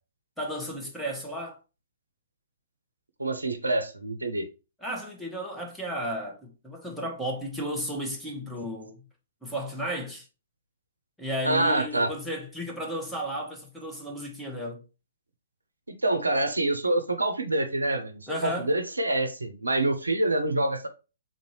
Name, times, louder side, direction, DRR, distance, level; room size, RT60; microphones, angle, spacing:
voice 1, 0.4-1.6 4.8-9.0 9.4-10.3 11.2-14.8 18.3-18.7, equal, ahead, 0.9 m, -34 dB
voice 2, 3.2-4.5 11.4-12.1 16.0-20.9, right 2 dB, 80° right, 0.5 m, -26 dB
3.7 x 2.6 x 3.1 m
figure-of-eight pair, 115°, 0 cm